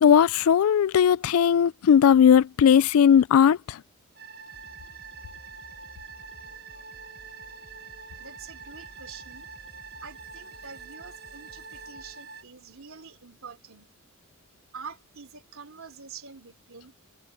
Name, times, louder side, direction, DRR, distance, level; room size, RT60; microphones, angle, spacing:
voice 1, 0.0-3.8, left 8 dB, 80° left, 0.3 m, -18 dB
sound 1, 4.2-12.4, right 5 dB, 45° right, 1.5 m, -45 dB
sound 2, 4.5-12.2, right 1 dB, 30° right, 3.3 m, -54 dB
voice 2, 8.2-9.5 10.0-13.9 14.7-17.0, right 5 dB, 75° right, 3.1 m, -46 dB
head